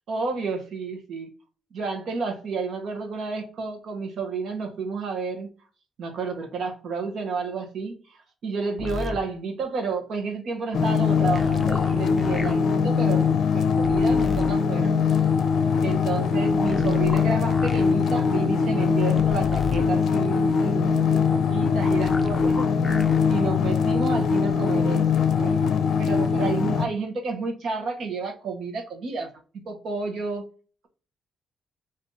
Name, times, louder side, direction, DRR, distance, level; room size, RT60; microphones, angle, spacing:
voice 1, 0.1-1.3 1.7-5.5 6.0-14.9 15.8-22.7 23.3-29.3 29.6-30.4, right 4 dB, 70° right, 1.0 m, -31 dB
sound 1, 8.8-9.2 11.2-12.5 13.8-14.5 16.5-17.9 19.2-19.9 21.8-23.2 24.5-24.6, left 3 dB, 20° left, 0.5 m, -34 dB
sound 2, 10.7-26.9, left 6 dB, 70° left, 0.5 m, -22 dB
3.6 x 2.6 x 3.8 m
cardioid pair, 120°, 0 cm